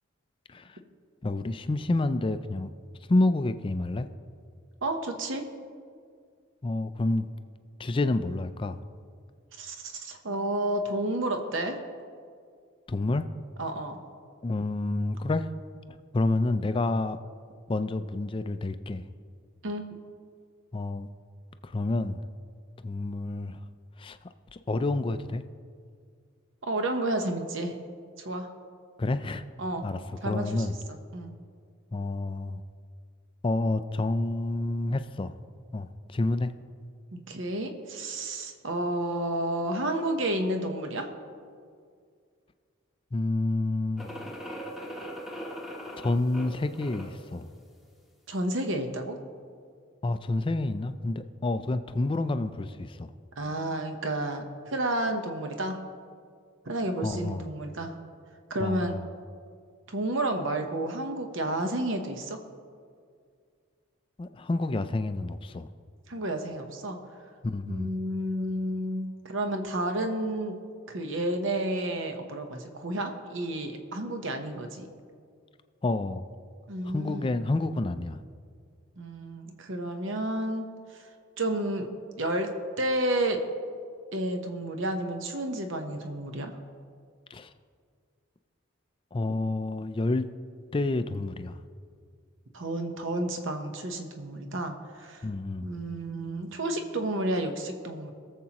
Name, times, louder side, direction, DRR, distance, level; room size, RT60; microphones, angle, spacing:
voice 1, 1.2-2.7 3.1-4.1 6.6-7.3 7.8-8.8 12.9-13.3 14.4-15.5 15.9-17.2 17.7-19.0 20.7-21.1 21.6-22.2 22.8-23.6 24.0-24.2 24.5-25.4 29.0-29.4 29.8-30.7 31.9-32.6 33.4-35.3 35.7-36.5 43.1-44.1 46.0-47.5 50.0-53.1 57.0-57.4 58.6-59.0 64.2-65.7 67.4-67.9 75.8-76.3 76.8-78.2 87.3-87.5 89.1-90.3 90.7-91.6 95.2-95.7, left 2 dB, 25° left, 10 dB, 0.3 m, -29 dB
voice 2, 4.8-5.4 9.6-11.8 13.6-14.0 19.6-19.8 26.6-27.8 28.2-28.5 29.6-29.8 30.2-31.3 37.1-41.1 48.3-49.2 53.4-55.8 56.6-58.0 58.5-59.0 59.9-62.4 66.1-67.0 67.7-70.6 70.9-74.9 76.7-77.3 79.0-81.1 81.4-81.9 82.2-82.5 82.8-83.4 84.1-86.6 92.5-95.3 95.6-98.1, right 1 dB, 65° right, 5 dB, 0.9 m, -31 dB
sound 1, 44.0-47.3, equal, ahead, 1.0 m, -40 dB
21.0 x 7.4 x 3.0 m, 2.1 s
head